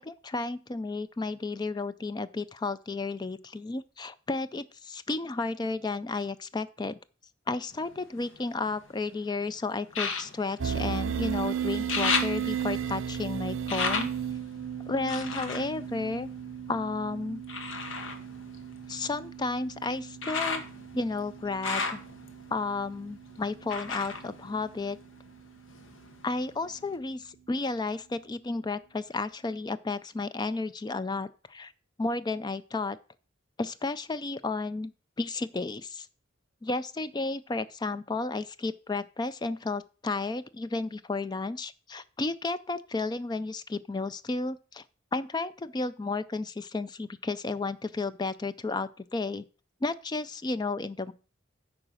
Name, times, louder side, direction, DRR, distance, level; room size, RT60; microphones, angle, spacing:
voice 1, 0.0-7.0 7.5-14.1 14.9-16.3 16.7-17.4 18.9-20.6 20.9-22.0 22.5-25.0 26.2-31.7 32.0-33.0 33.6-34.9 35.2-36.1 36.6-44.8 45.1-49.4 49.8-51.1, left 3 dB, 20° left, 0.3 m, -32 dB
sound 1, 7.7-9.1 9.9-11.4 11.7-16.8 17.5-25.3 25.6-26.5 26.9-27.0, left 4 dB, 70° left, 1.2 m, -35 dB
sound 2, 10.6-25.7, right 8 dB, 75° right, 0.6 m, -36 dB
8.9 x 4.9 x 6.2 m
head